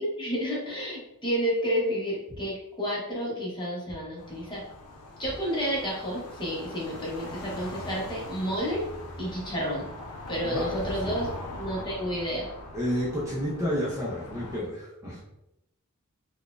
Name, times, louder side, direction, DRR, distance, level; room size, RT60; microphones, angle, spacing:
voice 1, 0.0-4.6 5.2-8.9 9.2-9.8 10.3-11.3 11.6-12.5, equal, 20° left, -4 dB, 1.0 m, -30 dB
sound 1, 4.2-14.6, left 1 dB, 75° left, 0.6 m, -41 dB
voice 2, 12.7-15.2, equal, 15° right, -6 dB, 0.6 m, -30 dB
4.1 x 2.3 x 2.4 m, 0.85 s
head